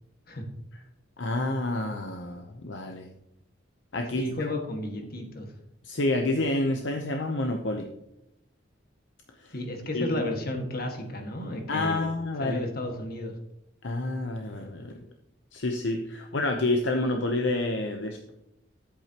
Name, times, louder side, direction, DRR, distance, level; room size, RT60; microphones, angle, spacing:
voice 1, 1.2-3.1 3.9-4.5 5.8-7.9 9.4-9.5 9.9-10.2 11.7-12.6 13.8-14.9 15.5-18.3, left 2 dB, 70° left, 3 dB, 0.8 m, -28 dB
voice 2, 4.1-5.5 9.5-12.1 12.4-13.3, left 1 dB, 55° left, 3 dB, 1.8 m, -33 dB
10.5 x 8.5 x 3.0 m, 0.80 s
head